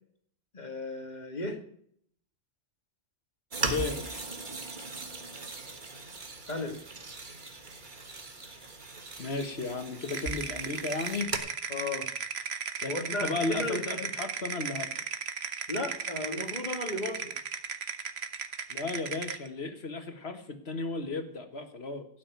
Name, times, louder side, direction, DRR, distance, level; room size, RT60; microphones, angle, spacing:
voice 1, 0.5-1.6 6.5-6.7 11.7-12.1 12.9-14.0 15.7-17.3, left 2 dB, 40° left, 3 dB, 2.5 m, -35 dB
sound 1, 3.5-11.4, right 3 dB, 50° right, 1.6 m, -39 dB
voice 2, 3.7-4.3 9.2-11.3 12.8-14.9 18.7-22.1, left 3 dB, 75° left, 6 dB, 1.9 m, -34 dB
sound 2, 10.1-19.5, right 6 dB, 75° right, 1.3 m, -36 dB
16.5 x 6.4 x 9.4 m, 0.66 s
omnidirectional pair, 1.1 m